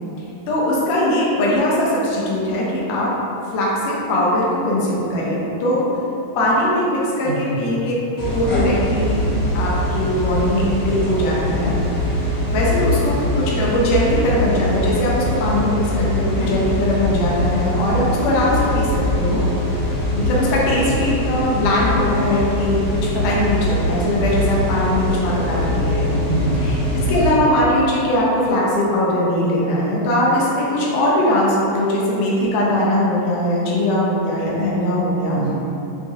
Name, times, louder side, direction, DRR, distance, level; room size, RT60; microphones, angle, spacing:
voice 1, 0.5-3.1 3.5-5.9 6.4-9.3 9.5-11.8 12.5-19.4 20.1-22.8 23.1-26.3 27.1-35.4, left 1 dB, 80° left, -5 dB, 2.2 m, -20 dB
voice 2, 7.2-7.8 26.3-27.1 35.3-35.5, right 2 dB, 80° right, -10 dB, 1.6 m, -25 dB
sound 1, 8.2-27.3, left 1 dB, 65° left, 1.9 m, -22 dB
5.8 x 2.5 x 2.6 m, 2.9 s
omnidirectional pair, 3.8 m